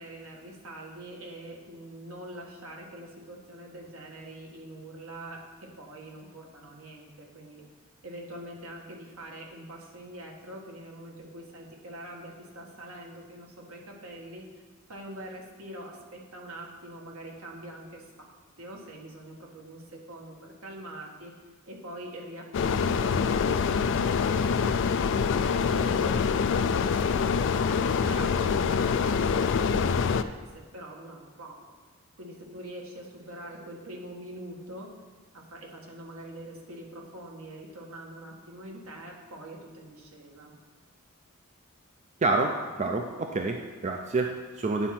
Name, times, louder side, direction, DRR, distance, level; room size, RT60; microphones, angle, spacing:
voice 1, 0.0-5.4 5.8-7.6 8.0-14.6 14.9-18.0 18.6-21.3 21.7-25.3 25.6-31.5 32.2-34.9 35.3-40.5, right 1 dB, 70° right, 0 dB, 1.5 m, -44 dB
sound 1, 22.5-30.2, left 6 dB, 60° left, 0.4 m, -25 dB
voice 2, 42.2-44.9, right 3 dB, 30° right, 3 dB, 0.4 m, -28 dB
10.0 x 4.3 x 5.9 m, 1.3 s
head